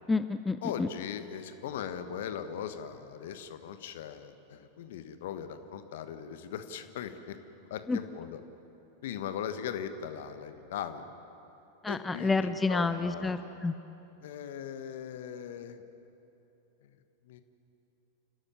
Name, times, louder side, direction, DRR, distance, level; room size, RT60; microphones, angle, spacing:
voice 1, 0.1-0.9 7.9-8.0 11.8-13.7, left 3 dB, 10° left, 11 dB, 0.6 m, -29 dB
voice 2, 0.6-7.4 7.7-8.4 9.0-11.0 11.9-13.4 14.2-15.8 16.8-16.9 17.2-17.4, left 8 dB, 55° left, 9 dB, 1.4 m, -39 dB
30.0 x 12.5 x 9.7 m, 2.9 s
figure-of-eight pair, 90°, 0 cm